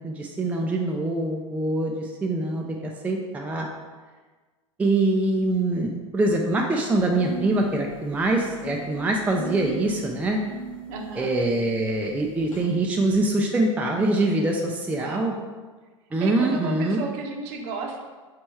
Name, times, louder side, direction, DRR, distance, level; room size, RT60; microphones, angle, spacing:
voice 1, 0.0-3.7 4.8-10.4 11.2-15.3 16.1-17.0, right 2 dB, 10° right, 1 dB, 0.4 m, -24 dB
sound 1, 6.9-12.7, right 2 dB, 90° left, 0.5 m, -39 dB
voice 2, 10.9-11.3 14.9-15.3 16.2-18.0, right 4 dB, 45° right, 2 dB, 0.7 m, -33 dB
3.3 x 3.1 x 4.4 m, 1.4 s
figure-of-eight pair, 85°, 17 cm